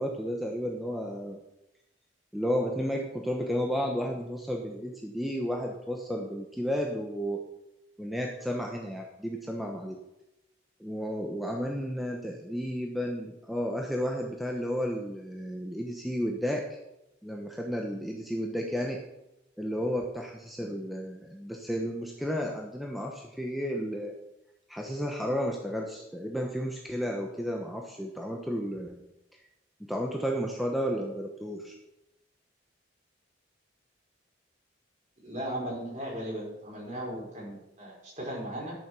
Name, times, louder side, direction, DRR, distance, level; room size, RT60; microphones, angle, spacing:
voice 1, 0.0-1.4 2.3-7.4 8.0-10.0 10.8-16.6 17.2-19.0 19.6-24.1 24.7-29.0 29.9-31.8, equal, ahead, 0 dB, 1.0 m, -32 dB
voice 2, 35.2-38.7, right 1 dB, 40° right, -4 dB, 5.2 m, -37 dB
12.0 x 7.2 x 6.2 m, 0.90 s
head